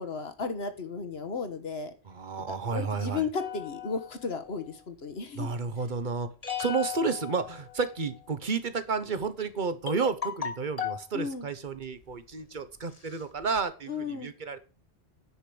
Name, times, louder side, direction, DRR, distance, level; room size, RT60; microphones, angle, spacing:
voice 1, 0.0-1.9 2.5-5.5 11.1-11.4 13.9-14.3, left 5 dB, 70° left, 8 dB, 1.6 m, -34 dB
voice 2, 2.1-3.3 5.3-6.3 6.6-14.6, right 4 dB, 50° right, 11 dB, 1.2 m, -31 dB
sound 1, 3.4-4.7 6.4-8.2 9.2-9.3 9.9-11.1 11.8-12.1 12.6-12.7 12.9-13.6, left 9 dB, 35° left, 1.4 m, -37 dB
9.8 x 5.1 x 7.8 m, 0.34 s
omnidirectional pair, 1.1 m